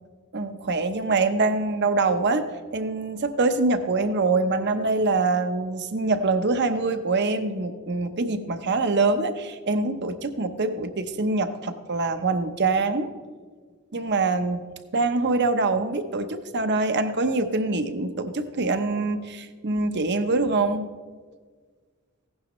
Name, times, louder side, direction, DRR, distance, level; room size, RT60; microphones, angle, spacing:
voice 1, 0.3-2.4 2.7-13.1 13.9-14.6 14.9-20.9, right 3 dB, 55° right, 9 dB, 0.8 m, -24 dB
15.5 x 11.0 x 3.1 m, 1.5 s
head